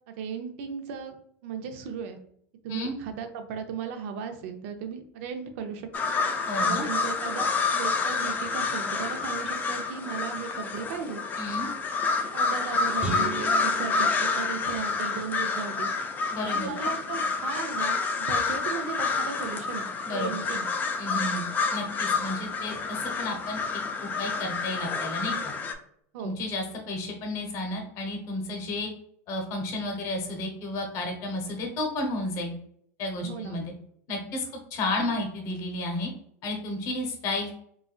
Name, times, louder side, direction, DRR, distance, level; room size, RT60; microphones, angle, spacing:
voice 1, 0.1-1.2 1.4-2.2 2.6-6.1 6.4-11.2 12.3-15.9 16.4-20.7 26.1-26.4 33.2-33.6, right 6 dB, 65° right, 6 dB, 0.6 m, -36 dB
sound 1, 5.9-25.7, left 4 dB, 25° left, 0.4 m, -28 dB
voice 2, 6.5-6.9 11.4-11.7 16.3-16.7 20.1-20.3 21.0-21.4 21.7-23.6 24.0-25.5 26.2-28.9 29.3-32.5 33.0-33.7 34.1-34.4 34.7-36.1 36.4-37.5, left 2 dB, 45° left, 2 dB, 0.9 m, -32 dB
sound 2, 13.0-15.3, right 2 dB, 15° right, 1.1 m, -36 dB
4.0 x 2.5 x 2.3 m, 0.68 s
supercardioid pair, 135°, 8 cm